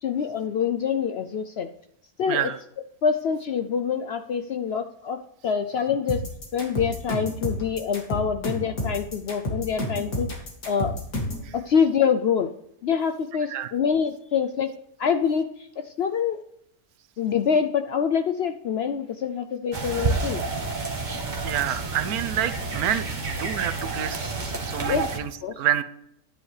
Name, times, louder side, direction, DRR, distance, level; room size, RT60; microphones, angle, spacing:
voice 1, 0.0-1.7 2.2-2.5 3.0-6.2 6.5-10.3 10.7-10.9 11.5-12.5 12.8-14.7 15.0-16.4 17.2-20.4 24.9-25.1 25.4-25.6, left 7 dB, 65° left, 9 dB, 0.6 m, -25 dB
sound 1, 6.1-11.5, left 1 dB, 85° left, 2.8 m, -30 dB
sound 2, 19.7-25.2, right 3 dB, 35° right, 1.2 m, -29 dB
voice 2, 21.4-24.2 24.6-25.3 25.6-25.8, right 10 dB, 90° right, 13 dB, 1.2 m, -27 dB
10.5 x 9.7 x 3.3 m, 0.76 s
omnidirectional pair, 1.5 m